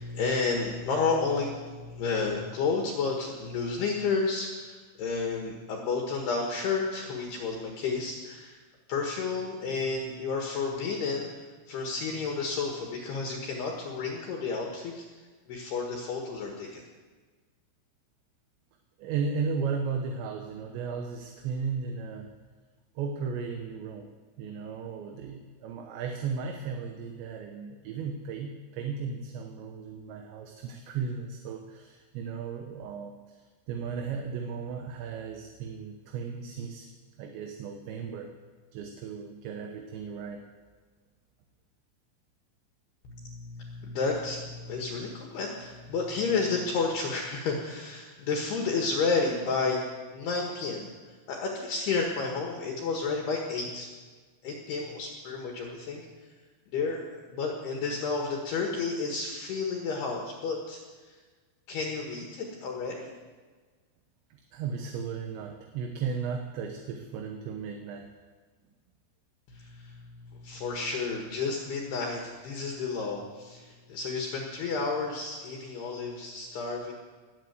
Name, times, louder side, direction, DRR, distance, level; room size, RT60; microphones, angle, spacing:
voice 1, 0.0-8.6 8.9-15.0 15.5-16.8 43.0-49.8 50.1-50.9 51.3-53.9 54.4-56.0 56.7-60.8 61.1-61.2 61.7-63.1 69.5-76.9, left 4 dB, 65° left, 0 dB, 3.1 m, -31 dB
voice 2, 19.0-22.3 23.0-24.1 24.4-36.9 37.2-38.3 38.7-40.4 64.3-68.1, right 5 dB, 75° right, 4 dB, 3.0 m, -35 dB
19.5 x 8.1 x 8.1 m, 1.4 s
omnidirectional pair, 5.8 m